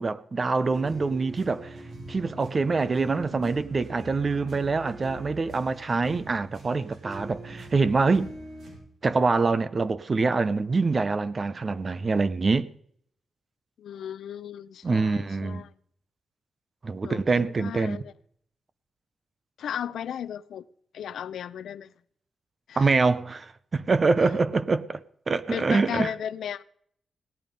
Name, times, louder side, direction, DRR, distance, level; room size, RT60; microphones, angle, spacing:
voice 1, 0.0-1.8 2.1-8.3 9.0-12.7 14.8-15.7 16.8-18.0 22.8-25.0 25.3-26.1, right 4 dB, 30° right, 0.6 m, -25 dB
sound 1, 0.6-8.7, right 2 dB, 60° right, 4.8 m, -42 dB
voice 2, 13.8-15.7 17.0-18.1 19.6-20.6 20.9-21.9 22.7-22.9 25.5-26.6, left 9 dB, 85° left, 0.5 m, -35 dB
17.5 x 11.0 x 5.3 m
wide cardioid pair, 170°, 0 cm